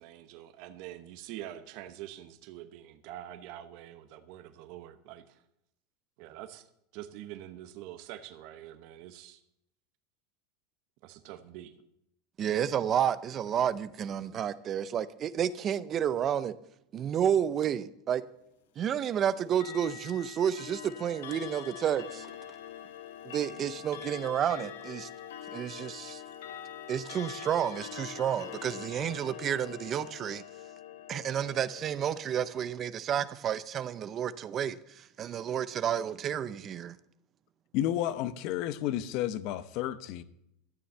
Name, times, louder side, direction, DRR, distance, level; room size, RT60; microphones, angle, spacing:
voice 1, 0.0-5.4 6.2-6.7 6.9-9.4 11.0-11.7, right 12 dB, 50° right, 1.0 m, -45 dB
voice 2, 12.4-16.6 16.9-18.3 18.8-22.3 23.2-25.1 25.5-26.2 26.9-30.4 31.1-37.0, right 9 dB, 30° right, 0.5 m, -31 dB
Clock, 19.5-32.6, left 10 dB, 90° left, 1.2 m, -44 dB
voice 3, 37.7-40.2, left 12 dB, 50° left, 0.8 m, -31 dB
12.5 x 7.0 x 7.7 m
supercardioid pair, 150°, 0 cm